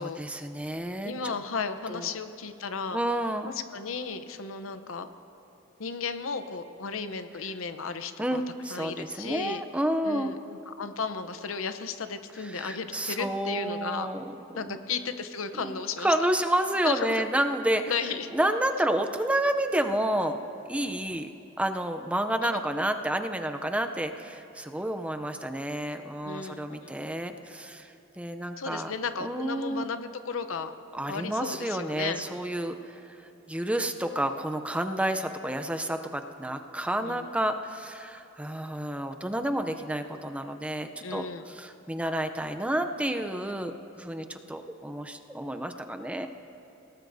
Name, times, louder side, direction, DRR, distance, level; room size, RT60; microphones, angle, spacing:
voice 1, 0.0-1.3 1.9-2.1 2.9-3.5 8.2-10.3 12.4-14.8 15.5-17.8 18.3-20.4 20.7-21.3 21.6-28.9 29.2-30.0 30.9-33.2 33.5-46.3, right 1 dB, 5° right, 6 dB, 0.5 m, -30 dB
voice 2, 1.0-3.0 3.4-5.1 5.8-8.4 8.7-9.6 10.0-10.4 10.7-14.1 14.5-16.1 16.8-17.2 17.9-18.3 26.2-26.9 28.6-30.7 31.1-32.2 36.9-37.2 41.0-41.5, left 5 dB, 80° left, 10 dB, 0.8 m, -34 dB
27.0 x 18.0 x 2.7 m, 2.8 s
head